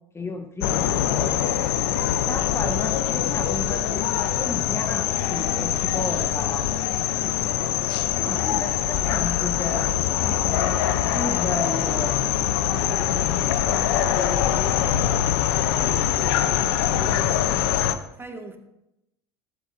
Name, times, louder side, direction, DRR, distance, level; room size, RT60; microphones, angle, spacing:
voice 1, 0.1-1.6 2.3-6.7 7.0-7.1 8.1-12.2, left 2 dB, 20° left, 5 dB, 1.3 m, -33 dB
sound 1, 0.6-17.9, left 11 dB, 65° left, 0.9 m, -23 dB
voice 2, 12.7-17.9 18.2-18.6, right 2 dB, 15° right, 4 dB, 2.2 m, -39 dB
15.0 x 14.5 x 2.8 m, 0.87 s
hypercardioid pair, 70°, 14 cm